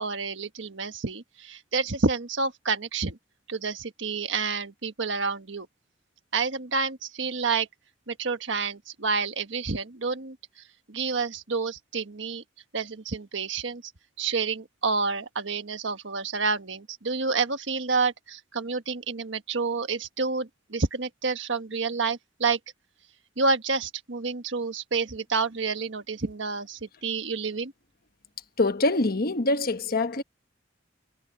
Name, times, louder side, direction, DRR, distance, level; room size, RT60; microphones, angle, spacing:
voice 1, 0.0-3.2 3.5-5.7 6.3-7.7 8.1-10.4 10.9-12.4 12.7-13.8 14.2-22.6 23.4-27.7, right 4 dB, 75° right, 1.5 m, -29 dB
voice 2, 28.6-30.2, left 2 dB, 55° left, 1.3 m, -24 dB
head